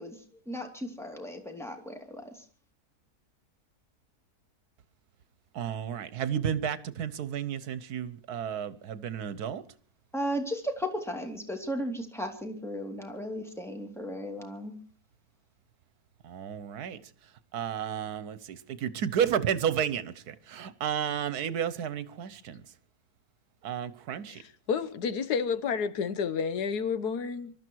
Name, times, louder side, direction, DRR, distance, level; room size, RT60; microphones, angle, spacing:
voice 1, 0.0-2.4 10.1-14.7, equal, ahead, 2.7 m, -35 dB
voice 2, 5.5-9.6 16.2-17.0 17.5-22.6 23.6-24.4, right 8 dB, 75° right, 1.5 m, -32 dB
voice 3, 24.3-27.5, left 6 dB, 90° left, 1.6 m, -30 dB
24.5 x 13.0 x 4.6 m
omnidirectional pair, 1.6 m